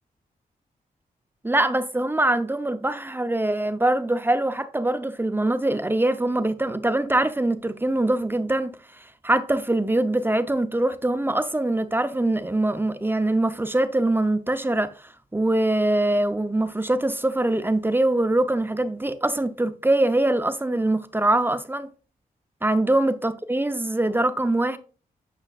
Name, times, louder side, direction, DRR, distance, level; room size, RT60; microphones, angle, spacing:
voice 1, 1.4-21.9 22.6-24.8, right 1 dB, 15° right, 0.6 m, -23 dB
9.0 x 5.0 x 2.4 m
cardioid pair, 65°, 16 cm